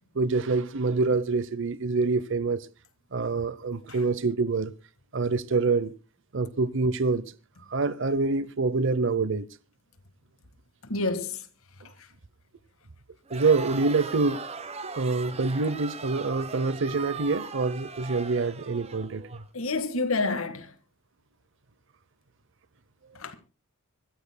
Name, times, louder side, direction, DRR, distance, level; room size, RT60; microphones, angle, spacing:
voice 1, 0.1-2.7 3.1-4.7 5.1-5.9 6.3-7.2 7.7-9.5 13.3-14.4 14.9-19.4, right 3 dB, 60° right, 0.7 m, -26 dB
voice 2, 10.9-11.5 19.5-20.7 23.2-23.4, left 3 dB, 70° left, 1.7 m, -28 dB
Crowd, 13.3-19.4, right 5 dB, 30° right, 1.0 m, -39 dB
25.0 x 14.0 x 2.2 m
head